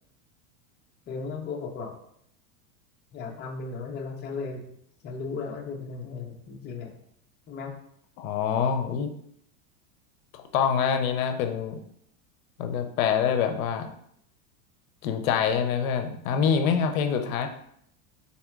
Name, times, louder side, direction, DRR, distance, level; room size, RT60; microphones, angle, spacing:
voice 1, 1.1-2.0 3.1-4.7 5.0-7.0 7.5-7.7, left 4 dB, 25° left, 3 dB, 0.6 m, -36 dB
voice 2, 8.2-9.1 10.5-11.8 12.6-13.9 15.0-17.5, left 7 dB, 80° left, 6 dB, 0.6 m, -25 dB
4.2 x 3.9 x 2.3 m, 0.70 s
supercardioid pair, 125°, 41 cm